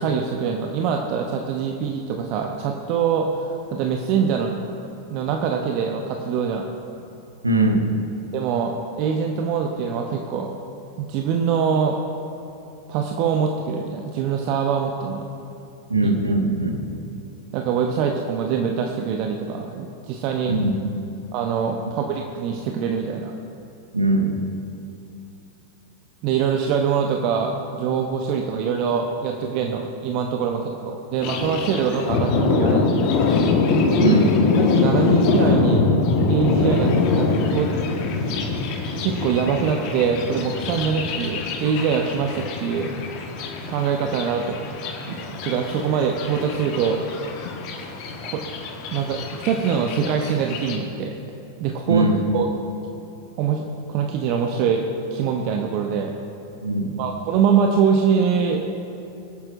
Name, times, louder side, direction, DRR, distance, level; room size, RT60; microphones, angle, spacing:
voice 1, 0.0-3.5 3.7-4.6 5.1-6.7 8.3-10.5 11.0-12.0 12.9-15.2 17.5-20.5 21.3-23.3 26.2-33.1 34.7-35.9 36.3-37.9 39.0-42.9 43.7-44.6 45.1-47.0 48.2-48.4 48.9-51.2 51.6-52.1 52.3-52.5 53.4-54.8 55.1-56.1 57.0-58.6, right 6 dB, 45° right, 3 dB, 0.8 m, -23 dB
voice 2, 7.4-7.9 15.9-16.9 20.5-20.7 23.9-24.3 34.0-34.4 51.9-52.2 56.6-56.9, right 2 dB, 80° right, 4 dB, 1.2 m, -20 dB
Thunder, 31.2-50.8, left 4 dB, 45° left, 1.3 m, -23 dB
23.0 x 8.9 x 2.6 m, 2.8 s
figure-of-eight pair, 90°, 0 cm